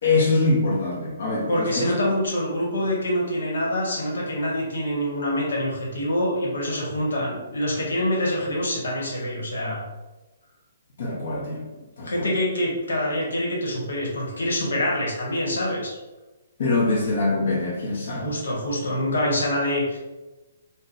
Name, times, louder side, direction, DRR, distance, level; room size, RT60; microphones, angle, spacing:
voice 1, 0.0-1.9 11.0-11.6 12.0-12.3 16.6-18.4, left 3 dB, 55° left, -5 dB, 0.8 m, -24 dB
voice 2, 1.5-9.8 12.0-16.0 18.1-20.0, left 1 dB, 90° left, -3 dB, 1.1 m, -25 dB
2.7 x 2.1 x 3.8 m, 1.1 s
hypercardioid pair, 165°, 0 cm